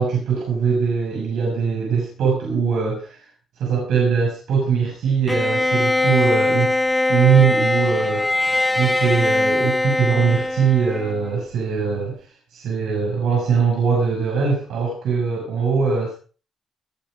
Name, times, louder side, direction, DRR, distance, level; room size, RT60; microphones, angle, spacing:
voice 1, 0.0-3.3 3.6-6.7 7.1-8.3 8.8-16.1, right 6 dB, 80° right, -2 dB, 6.5 m, -21 dB
Bowed string instrument, 5.3-11.3, left 1 dB, 10° left, 0.8 m, -21 dB
19.5 x 9.3 x 5.2 m, 0.39 s
cardioid pair, 155°, 0 cm